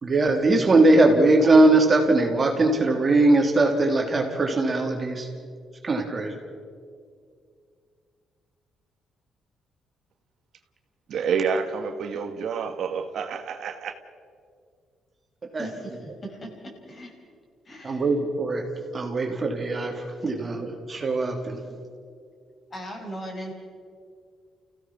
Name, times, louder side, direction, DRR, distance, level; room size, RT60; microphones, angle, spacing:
voice 1, 0.0-5.3 5.8-6.4 15.5-15.7 17.8-18.7 18.9-21.6, right 2 dB, 35° right, 2 dB, 3.4 m, -20 dB
voice 2, 11.1-13.9, right 6 dB, 70° right, 7 dB, 1.5 m, -28 dB
voice 3, 15.6-17.1 17.6-18.1 21.7-21.8 22.7-23.5, right 1 dB, 35° left, 1 dB, 5.8 m, -38 dB
29.5 x 16.5 x 6.0 m, 2.2 s
cardioid pair, 90°, 0 cm